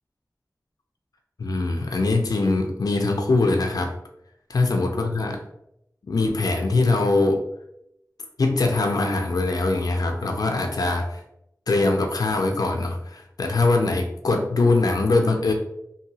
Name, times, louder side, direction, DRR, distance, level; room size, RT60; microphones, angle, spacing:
voice 1, 1.4-3.9 4.5-5.4 6.1-7.4 8.4-11.2 11.7-15.5, left 3 dB, 80° left, 3 dB, 0.4 m, -22 dB
2.8 x 2.6 x 2.6 m, 0.79 s
wide cardioid pair, 60°, 6 cm